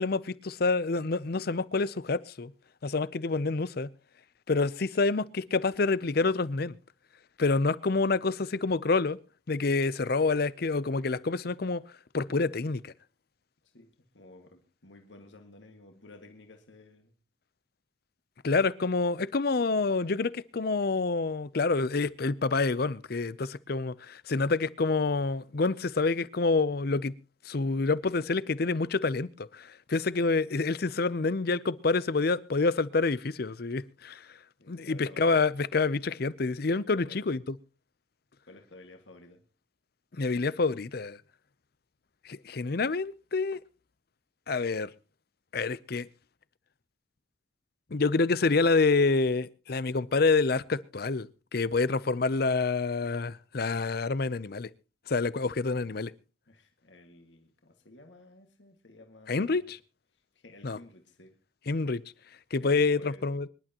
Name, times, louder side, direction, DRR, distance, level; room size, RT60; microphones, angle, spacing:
voice 1, 0.0-2.5 2.8-3.9 4.5-6.8 7.4-9.2 9.5-11.8 12.1-12.9 18.4-27.1 27.5-34.2 34.7-37.4 40.2-41.2 42.2-43.6 44.5-44.9 45.5-46.1 47.9-54.7 55.1-56.1 59.3-59.8 60.6-60.8 61.7-62.0 62.5-63.5, left 3 dB, 50° left, 0.6 m, -27 dB
voice 2, 14.1-17.1 34.6-35.3 36.9-37.3 38.5-39.4 55.6-56.1 56.5-59.7 60.4-61.3 62.6-63.2, left 1 dB, 70° left, 2.0 m, -53 dB
25.0 x 11.5 x 2.9 m
head